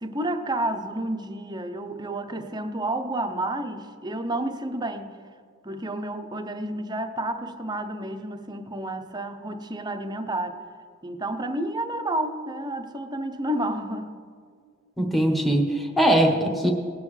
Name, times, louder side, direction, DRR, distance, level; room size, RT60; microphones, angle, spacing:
voice 1, 0.0-5.2 5.6-10.6 11.0-14.1, right 1 dB, 20° right, 7 dB, 0.6 m, -30 dB
voice 2, 15.0-16.7, right 1 dB, ahead, 1 dB, 1.0 m, -21 dB
18.5 x 9.4 x 3.2 m, 2.1 s
head